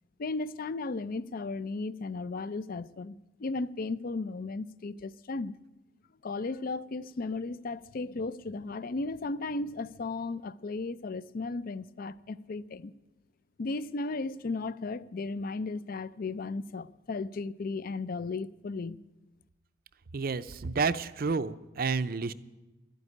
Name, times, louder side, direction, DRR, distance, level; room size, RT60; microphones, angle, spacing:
voice 1, 0.2-5.5 6.2-12.9 13.6-19.0, left 3 dB, 50° left, 0.4 m, -35 dB
voice 2, 20.1-22.3, right 4 dB, 50° right, 0.5 m, -30 dB
12.5 x 9.4 x 9.8 m
head